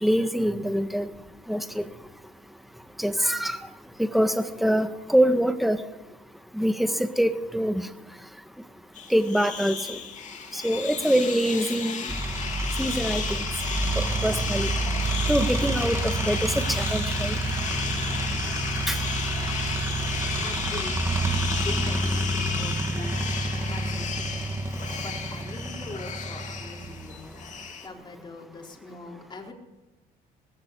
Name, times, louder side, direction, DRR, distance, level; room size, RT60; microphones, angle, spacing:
voice 1, 0.0-1.1 1.5-1.8 3.0-3.6 4.0-5.8 6.5-6.9 7.2-7.8 9.1-10.0 10.5-12.1 12.8-13.4 14.0-14.7 15.3-17.3 18.9-19.0, equal, ahead, 8 dB, 1.6 m, -24 dB
sound 1, 8.9-27.9, left 6 dB, 45° left, 2.5 m, -34 dB
sound 2, 12.1-27.7, right 2 dB, 15° right, 2.3 m, -29 dB
voice 2, 20.3-21.2 21.5-23.2 23.7-24.3 24.8-29.5, left 3 dB, 25° left, 1 dB, 4.1 m, -42 dB
19.5 x 16.0 x 8.4 m, 1.0 s
cardioid pair, 110°, 17 cm